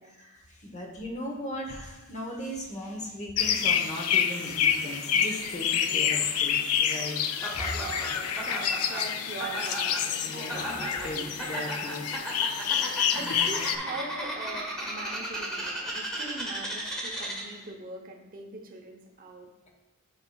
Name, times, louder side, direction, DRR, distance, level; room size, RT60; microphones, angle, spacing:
voice 1, 0.1-6.5 6.8-7.2 10.2-12.0 13.1-13.7, left 1 dB, 35° left, 0 dB, 1.0 m, -37 dB
sound 1, 3.4-13.8, left 8 dB, 85° left, 0.5 m, -28 dB
voice 2, 5.8-6.7 7.0-7.3 7.6-11.6 13.1-19.5, right 3 dB, 40° right, 2 dB, 0.8 m, -42 dB
Laughter, 7.4-17.7, right 1 dB, 5° left, 1.3 m, -36 dB
8.7 x 5.6 x 2.3 m, 1.1 s
head